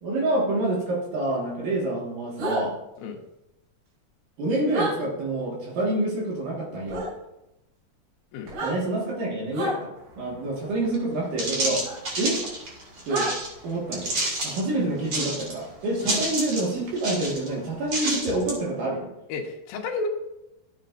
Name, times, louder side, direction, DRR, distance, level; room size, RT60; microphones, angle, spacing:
voice 1, 0.0-2.8 4.4-7.1 8.6-11.8 12.2-12.4 13.1-13.3 13.6-14.2 14.4-19.1, right 2 dB, 65° right, -3 dB, 3.3 m, -27 dB
sound 1, 2.4-2.6 4.7-4.9 6.9-7.1 8.4-8.7 9.5-9.7 11.8-12.0 13.1-13.3, right 1 dB, 90° right, 5.5 m, -28 dB
sound 2, 10.9-11.0 11.4-13.5 13.9-14.6 15.0-15.6 15.9-16.7 17.0-17.5 17.9-18.6, right 2 dB, 40° right, 2.7 m, -29 dB
voice 2, 19.3-20.1, left 4 dB, 75° left, 1 dB, 2.8 m, -32 dB
14.5 x 7.5 x 2.6 m, 0.89 s
omnidirectional pair, 4.4 m